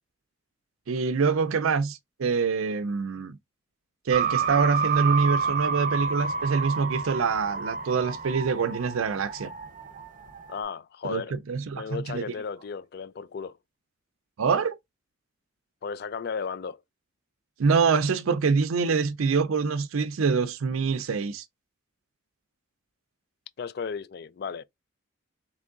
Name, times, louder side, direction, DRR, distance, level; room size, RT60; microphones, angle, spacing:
voice 1, 0.9-3.4 4.1-9.5 11.0-12.2 14.4-14.8 17.6-21.4, right 5 dB, 80° right, 0.5 m, -25 dB
sound 1, 4.1-10.6, right 6 dB, 40° right, 0.7 m, -29 dB
voice 2, 10.5-11.3 11.7-13.6 15.8-16.8 23.6-24.6, left 6 dB, 50° left, 0.3 m, -34 dB
3.5 x 3.1 x 3.8 m
head